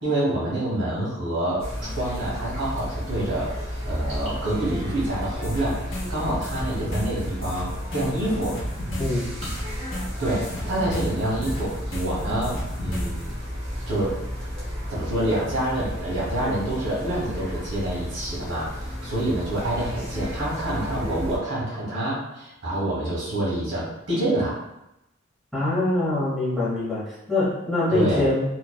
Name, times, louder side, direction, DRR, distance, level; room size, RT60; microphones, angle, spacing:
voice 1, 0.0-8.6 10.2-13.2 13.9-14.1 14.9-24.6 27.9-28.3, right 1 dB, 55° right, -6 dB, 1.3 m, -27 dB
sound 1, 1.6-21.4, equal, 25° right, 0.9 m, -33 dB
sound 2, 5.4-13.3, equal, 65° left, 0.7 m, -34 dB
voice 2, 9.0-9.3 25.5-28.4, left 2 dB, ahead, -9 dB, 0.9 m, -24 dB
3.1 x 2.3 x 2.2 m, 0.90 s
head